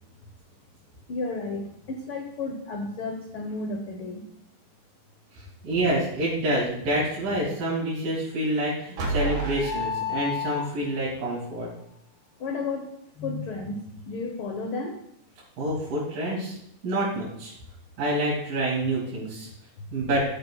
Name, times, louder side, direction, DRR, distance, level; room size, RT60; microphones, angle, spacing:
voice 1, 1.1-4.2 12.4-15.0 19.9-20.0, left 3 dB, 75° left, 3 dB, 1.2 m, -33 dB
voice 2, 5.3-11.7 15.6-16.6 16.8-17.5 18.0-19.5 19.9-20.3, right 1 dB, 85° right, -7 dB, 4.3 m, -27 dB
sound 1, 9.0-11.1, left 1 dB, 65° right, 2.8 m, -29 dB
13.0 x 9.4 x 2.3 m, 0.72 s
omnidirectional pair, 3.7 m